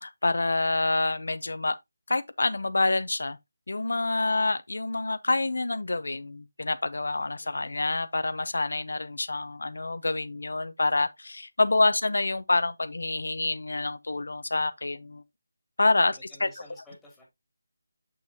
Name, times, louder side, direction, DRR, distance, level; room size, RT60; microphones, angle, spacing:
voice 1, 0.0-1.8 2.1-3.4 3.7-15.2 15.8-16.5, left 2 dB, 75° left, 0.7 m, -27 dB
voice 2, 4.1-4.5 7.4-7.8 11.6-11.9 16.0-17.2, left 1 dB, 5° left, 2.6 m, -53 dB
7.2 x 6.3 x 2.8 m
figure-of-eight pair, 165°, 0 cm